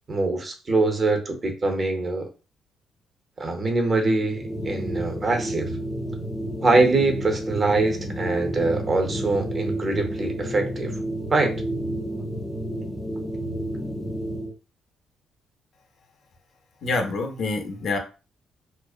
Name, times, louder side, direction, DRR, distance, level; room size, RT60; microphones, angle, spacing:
voice 1, 0.1-2.3 3.4-5.7 6.6-10.9 11.3-11.5, right 3 dB, 35° right, 0.6 m, -23 dB
sound 1, 4.3-14.5, right 1 dB, 15° left, 0.4 m, -30 dB
voice 2, 16.8-18.0, left 3 dB, 60° left, 0.6 m, -26 dB
2.5 x 2.0 x 2.3 m
cardioid pair, 90°, 0 cm